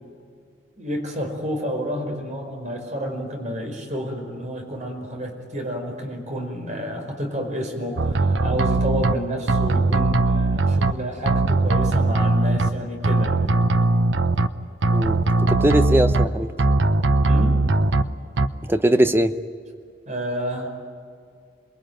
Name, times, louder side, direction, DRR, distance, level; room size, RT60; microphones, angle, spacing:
voice 1, 0.8-13.5 17.2-17.6 20.1-20.7, equal, 40° right, 3 dB, 5.1 m, -30 dB
sound 1, 8.0-9.1 9.5-10.9 11.3-12.7 13.0-14.5 14.8-16.3 16.6-18.0 18.4-18.5, right 2 dB, 80° right, 0.9 m, -19 dB
voice 2, 14.9-16.5 18.7-19.3, right 1 dB, 10° right, 9 dB, 0.8 m, -20 dB
28.0 x 21.5 x 9.2 m, 2.2 s
head